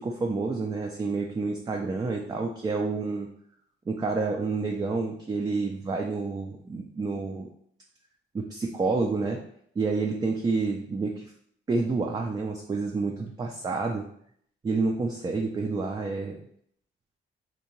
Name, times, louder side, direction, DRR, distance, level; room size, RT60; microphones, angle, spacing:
voice 1, 0.0-3.3 3.9-7.5 8.3-9.4 9.8-11.3 11.7-14.1 14.6-16.4, right 3 dB, 20° right, 0 dB, 0.3 m, -29 dB
2.7 x 2.1 x 2.9 m, 0.65 s
cardioid pair, 90°, 20 cm